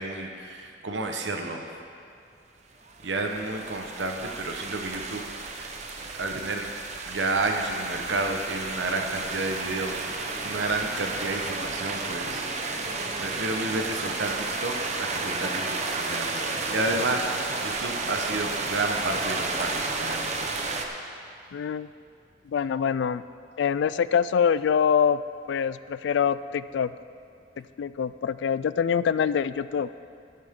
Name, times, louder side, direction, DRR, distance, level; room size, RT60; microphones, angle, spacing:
voice 1, 0.0-1.8 3.0-5.3 5.5-5.7 6.0-6.7 7.0-12.9 13.2-20.5, right 2 dB, 80° right, 3 dB, 1.1 m, -31 dB
sound 1, 2.9-20.9, right 3 dB, 40° right, 0.8 m, -32 dB
voice 2, 21.5-21.9 22.5-23.2 23.6-25.2 25.5-26.9 27.8-30.0, left 7 dB, 70° left, 15 dB, 0.3 m, -25 dB
12.5 x 11.5 x 3.7 m, 2.4 s
head